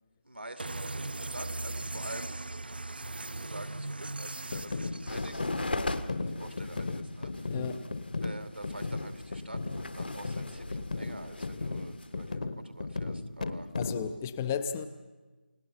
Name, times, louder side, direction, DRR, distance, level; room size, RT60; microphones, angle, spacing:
voice 1, 0.2-2.5 3.1-6.0 6.3-7.5 8.2-13.7, right 1 dB, 75° right, 8 dB, 2.4 m, -47 dB
sound 1, 0.6-5.4, right 2 dB, 60° right, 0.8 m, -38 dB
sound 2, 4.5-14.2, left 3 dB, 45° left, 1.3 m, -36 dB
sound 3, 5.1-12.4, left 2 dB, 65° left, 1.6 m, -39 dB
voice 2, 7.5-7.8 13.8-14.9, left 7 dB, 10° left, 10 dB, 0.6 m, -33 dB
29.5 x 18.0 x 5.6 m, 1.2 s
figure-of-eight pair, 160°, 6 cm